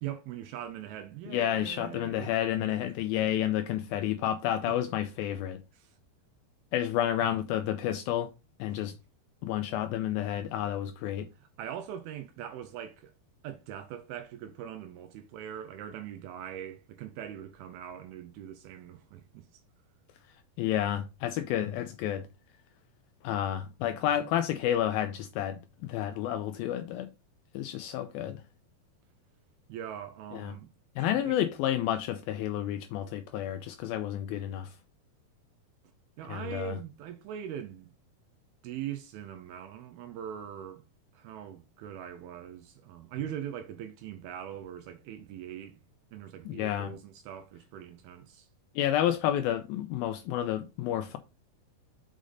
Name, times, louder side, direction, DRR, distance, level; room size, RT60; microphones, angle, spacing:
voice 1, 0.0-2.3 4.7-4.8 5.7-6.0 8.7-8.8 11.4-13.1 13.4-19.6 29.7-31.4 36.2-37.9 38.6-40.8 41.1-45.8 46.1-48.5, right 10 dB, 80° right, 2.5 m, -41 dB
voice 2, 1.3-5.6 6.7-8.3 8.6-9.0 9.4-11.3 20.3-22.3 23.2-27.1 27.5-28.4 30.3-30.5 31.0-34.8 36.3-36.8 46.5-46.9 48.8-51.2, left 11 dB, 85° left, 2.1 m, -30 dB
6.4 x 5.1 x 3.8 m
omnidirectional pair, 4.7 m